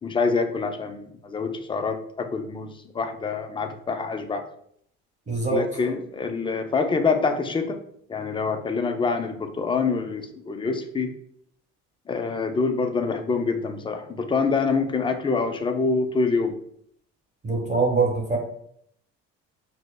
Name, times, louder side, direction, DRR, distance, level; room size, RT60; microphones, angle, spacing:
voice 1, 0.0-4.4 5.5-7.8 8.1-11.1 12.1-16.6, left 4 dB, 15° left, 7 dB, 0.4 m, -26 dB
voice 2, 5.3-5.6 17.4-18.4, right 3 dB, 20° right, -1 dB, 1.0 m, -23 dB
4.8 x 2.0 x 2.2 m, 0.67 s
supercardioid pair, 85°, 31 cm